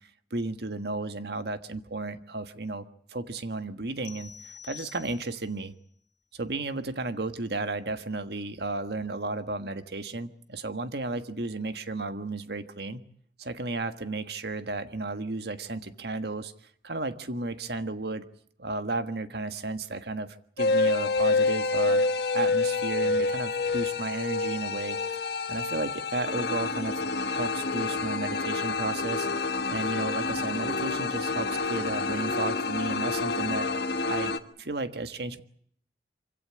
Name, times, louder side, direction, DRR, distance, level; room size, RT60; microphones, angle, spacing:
voice 1, 0.3-5.7 6.3-13.0 13.4-16.5 16.8-18.2 18.6-22.0 22.3-25.0 25.5-27.0 27.3-29.3 29.7-33.7 34.1-35.4, right 2 dB, 65° right, 10 dB, 1.6 m, -33 dB
sound 1, 4.1-5.6, left 8 dB, 90° left, 2.6 m, -46 dB
sound 2, 20.6-34.4, left 3 dB, 65° left, 1.5 m, -28 dB
25.5 x 16.5 x 9.7 m, 0.63 s
head